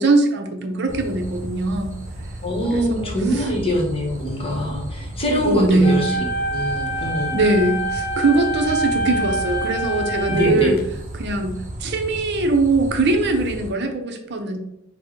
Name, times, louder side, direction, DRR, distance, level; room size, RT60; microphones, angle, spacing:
voice 1, 0.0-2.0 2.7-3.4 5.4-6.2 7.3-10.8 11.2-14.6, right 2 dB, 55° right, 5 dB, 0.6 m, -21 dB
sound 1, 0.9-13.7, right 1 dB, 35° right, 1.0 m, -34 dB
voice 2, 2.4-6.2 6.5-7.4 10.3-10.8, equal, 30° left, 0 dB, 1.0 m, -23 dB
sound 2, 5.8-10.8, right 1 dB, 50° left, 0.6 m, -26 dB
4.4 x 2.1 x 4.5 m, 0.81 s
head